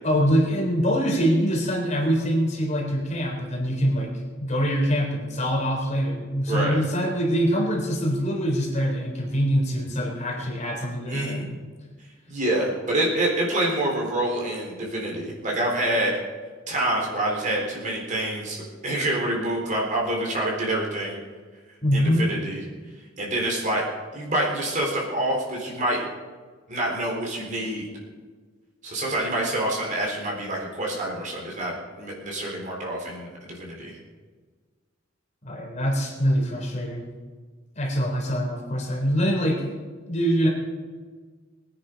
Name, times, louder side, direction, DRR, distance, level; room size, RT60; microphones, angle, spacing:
voice 1, 0.0-4.1 4.4-11.6 21.8-22.2 35.4-37.1 37.8-39.8 40.1-40.5, equal, 40° left, -1 dB, 3.6 m, -24 dB
voice 2, 6.5-6.8 11.1-11.5 12.3-16.1 16.7-21.2 21.9-22.6 23.2-23.9 24.1-26.1 26.7-27.9 28.8-34.0, right 1 dB, 40° right, -2 dB, 3.9 m, -27 dB
21.5 x 9.9 x 5.2 m, 1.5 s
head